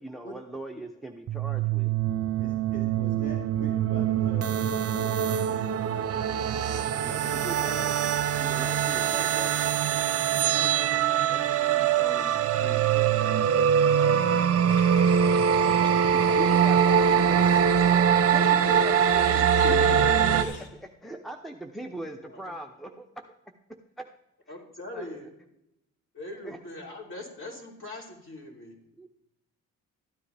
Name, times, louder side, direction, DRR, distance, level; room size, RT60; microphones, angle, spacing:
voice 1, 0.0-1.9 7.0-7.9 8.4-9.5 9.9-10.0 10.3-11.0 16.1-17.5 17.9-19.7 20.0-20.1 21.0-23.1 24.0-24.1 24.9-25.2 26.4-26.9 29.0-29.1, right 1 dB, ahead, 6 dB, 0.7 m, -40 dB
sound 1, 1.3-20.4, right 8 dB, 50° right, 0.7 m, -23 dB
voice 2, 2.4-5.2 7.0-7.6 8.5-8.6 9.5-9.6 10.1-10.2 11.3-13.7, left 2 dB, 25° left, 1 dB, 1.4 m, -45 dB
sound 2, 14.7-20.7, left 3 dB, 75° left, 1.7 m, -42 dB
voice 3, 18.4-18.8 19.3-20.4 22.2-22.5 24.5-25.3 26.1-28.8, left 2 dB, 40° left, -1 dB, 3.4 m, -40 dB
13.5 x 9.8 x 3.4 m, 0.86 s
cardioid pair, 90°, 30 cm